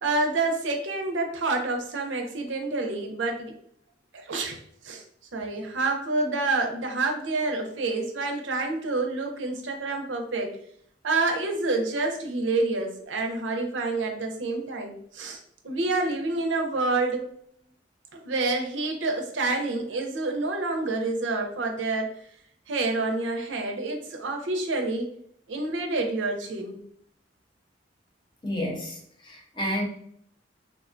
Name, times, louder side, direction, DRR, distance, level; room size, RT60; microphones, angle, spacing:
voice 1, 0.0-3.5 4.1-4.6 4.8-5.0 5.3-10.6 11.0-17.2 18.1-22.1 22.7-25.1 25.5-26.8, right 3 dB, 85° right, 2 dB, 0.6 m, -28 dB
voice 2, 28.4-29.8, equal, 25° left, 0 dB, 0.7 m, -30 dB
3.4 x 2.2 x 2.5 m, 0.66 s
head